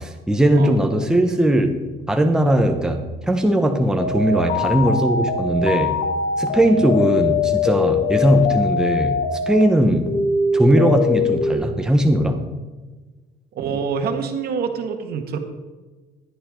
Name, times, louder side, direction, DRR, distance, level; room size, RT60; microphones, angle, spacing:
voice 1, 0.0-1.8 2.1-6.0 6.4-9.2 9.5-10.1 10.5-12.4, right 1 dB, 5° right, 4 dB, 1.1 m, -19 dB
sound 1, 4.0-9.6 10.1-11.5, left 4 dB, 70° left, 1.8 m, -22 dB
voice 2, 13.5-15.4, right 6 dB, 65° right, 5 dB, 1.7 m, -26 dB
14.0 x 11.0 x 3.8 m, 1.3 s
cardioid pair, 110°, 17 cm